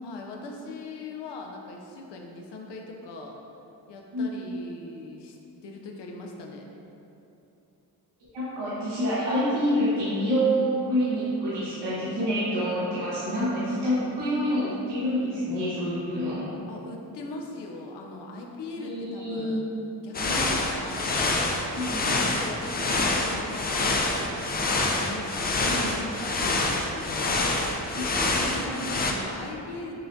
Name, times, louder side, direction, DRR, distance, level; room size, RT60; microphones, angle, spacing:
voice 1, 0.0-3.4 3.9-5.4 5.6-6.6 16.7-19.7 20.0-21.8 22.3-27.7 28.4-30.0, left 2 dB, 75° left, 0 dB, 0.5 m, -40 dB
voice 2, 8.3-16.5 18.7-19.6 21.7-22.1 25.7-26.0 27.9-28.0, equal, 75° right, -10 dB, 1.1 m, -27 dB
sound 1, 20.1-29.1, left 2 dB, 25° left, 0.3 m, -26 dB
6.0 x 2.1 x 2.6 m, 2.9 s
cardioid pair, 65°, 42 cm